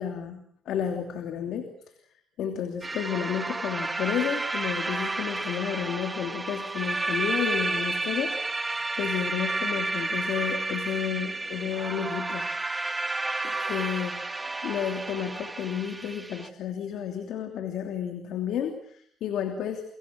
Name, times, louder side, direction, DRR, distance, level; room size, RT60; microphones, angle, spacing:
voice 1, 0.0-1.7 2.4-8.4 8.6-12.4 13.4-19.8, left 8 dB, 80° left, 6 dB, 3.1 m, -31 dB
sound 1, 2.8-16.5, right 2 dB, 20° right, 1.9 m, -31 dB
30.0 x 25.0 x 6.3 m, 0.65 s
cardioid pair, 90°, 0 cm